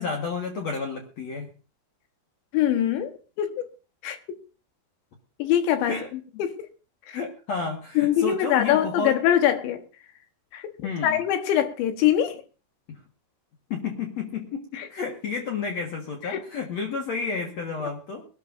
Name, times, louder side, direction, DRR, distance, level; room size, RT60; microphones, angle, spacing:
voice 1, 0.0-1.5 5.9-6.5 7.1-9.2 10.8-11.2 12.9-13.0 13.7-18.3, left 5 dB, 55° left, 2.0 m, -31 dB
voice 2, 2.5-3.7 4.0-4.2 5.4-6.0 6.4-6.5 8.0-9.8 11.0-12.4 16.3-16.4, left 11 dB, 85° left, 3.6 m, -22 dB
22.5 x 12.5 x 2.6 m
omnidirectional pair, 5.1 m